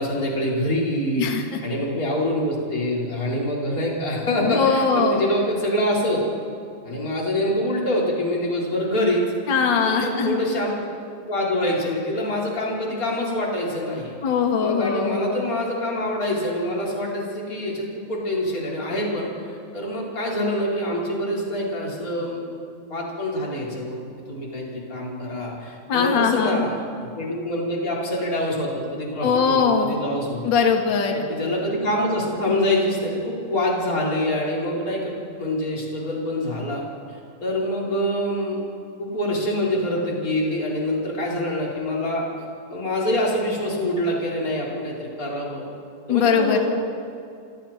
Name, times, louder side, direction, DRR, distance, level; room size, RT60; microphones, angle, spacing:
voice 1, 0.0-6.2 6.8-9.2 9.9-10.8 11.3-14.1 14.6-22.4 22.9-30.6 31.1-35.1 35.4-36.8 37.1-38.6 39.0-42.3 42.7-45.6 46.1-46.6, left 1 dB, 25° left, -4 dB, 4.9 m, -25 dB
voice 2, 4.4-5.2 9.5-10.4 14.2-15.2 25.9-26.7 29.2-29.9 30.4-31.2 46.1-46.6, left 6 dB, 40° left, 2 dB, 2.3 m, -21 dB
29.5 x 25.5 x 4.5 m, 2.4 s
omnidirectional pair, 4.1 m